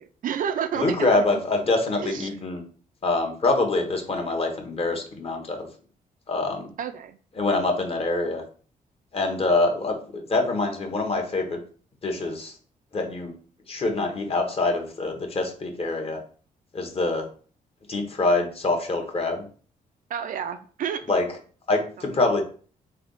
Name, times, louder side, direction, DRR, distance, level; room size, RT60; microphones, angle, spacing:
voice 1, 0.2-1.4 2.0-2.4 6.8-7.2 20.1-21.1, right 8 dB, 65° right, 9 dB, 0.5 m, -30 dB
voice 2, 0.8-2.6 3.0-5.7 6.3-6.6 7.4-8.4 9.1-11.6 12.0-12.5 12.9-13.3 13.7-16.2 16.7-17.2 17.9-19.4 21.1-21.2 21.7-22.4, left 2 dB, 40° left, 3 dB, 1.0 m, -25 dB
3.5 x 3.4 x 3.9 m, 0.42 s
cardioid pair, 120°, 15 cm